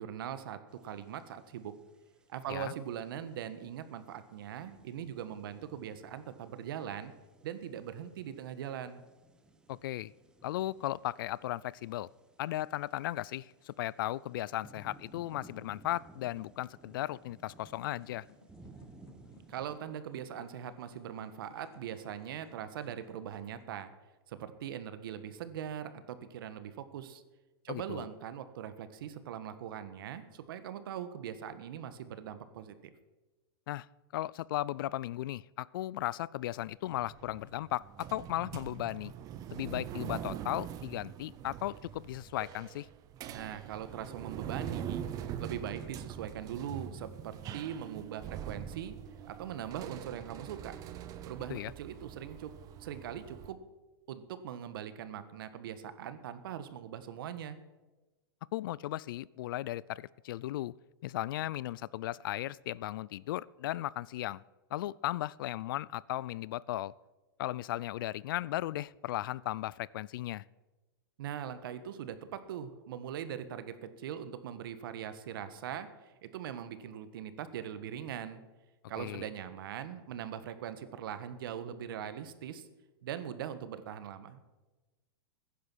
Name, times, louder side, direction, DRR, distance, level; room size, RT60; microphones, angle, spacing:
voice 1, 0.0-1.7 2.3-7.1 7.4-9.0 19.5-23.9 24.3-27.2 27.6-32.9 43.3-48.9 49.3-50.8 51.2-52.5 52.8-53.6 54.1-57.6 71.2-78.4 78.9-82.7 83.0-84.4, right 9 dB, 65° right, 12 dB, 1.5 m, -41 dB
sound 1, 0.7-19.8, right 2 dB, 5° right, 1.1 m, -59 dB
voice 2, 9.7-10.1 10.4-12.1 12.4-18.3 27.7-28.1 33.7-33.9 34.1-39.1 39.5-42.9 51.5-51.7 58.5-60.7 61.0-64.4 64.7-66.9 67.4-70.4 79.0-79.2, left 15 dB, 60° left, 23 dB, 0.4 m, -36 dB
sound 2, 17.5-23.6, left 7 dB, 85° left, 2.4 m, -63 dB
sound 3, 36.9-53.5, right 9 dB, 30° right, 0.8 m, -43 dB
15.5 x 10.0 x 6.3 m, 1.2 s
hypercardioid pair, 145°, 12 cm